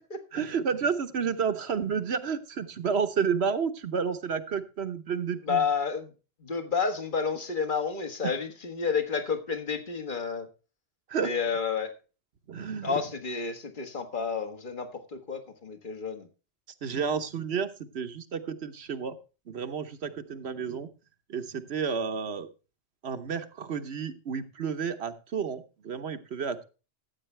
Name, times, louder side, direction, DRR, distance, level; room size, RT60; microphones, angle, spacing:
voice 1, 0.3-5.6 8.2-8.3 11.1-11.3 12.5-12.9 16.8-17.7 17.9-19.1 19.5-20.9 21.3-22.5 23.0-26.6, right 6 dB, 70° right, 10 dB, 1.2 m, -31 dB
voice 2, 5.4-6.1 6.4-10.5 11.2-11.9 12.8-16.3, left 5 dB, 50° left, 7 dB, 1.8 m, -30 dB
14.5 x 8.4 x 3.3 m, 0.32 s
omnidirectional pair, 1.1 m